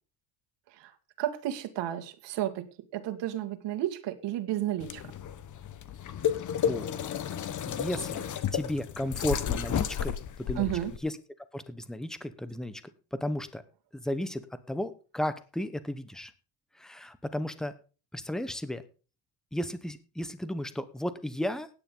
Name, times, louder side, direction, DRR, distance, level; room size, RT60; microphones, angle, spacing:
voice 1, 1.2-5.0 10.6-10.9, right 13 dB, 65° right, 2.1 m, -32 dB
sound 1, 4.8-11.0, left 9 dB, 40° left, 1.2 m, -32 dB
voice 2, 6.5-6.9 7.7-10.7 11.0-11.2 11.5-12.8 13.1-13.6 13.9-16.3 16.8-17.7 18.1-18.8 19.5-21.7, left 1 dB, ahead, 1.0 m, -34 dB
16.0 x 10.0 x 3.8 m
cardioid pair, 135°, 45 cm